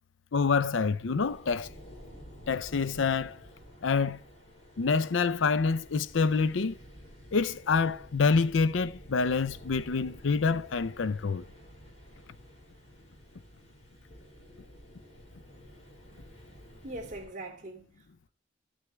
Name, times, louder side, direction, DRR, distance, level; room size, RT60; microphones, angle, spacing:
voice 1, 0.3-1.7 2.5-3.4 3.8-4.2 4.8-6.8 7.3-11.5, left 4 dB, 70° left, 0.5 m, -27 dB
sound 1, 0.8-17.3, equal, 35° left, 5.9 m, -51 dB
voice 2, 16.8-18.3, right 2 dB, 40° right, 2.7 m, -42 dB
14.0 x 6.3 x 3.4 m
head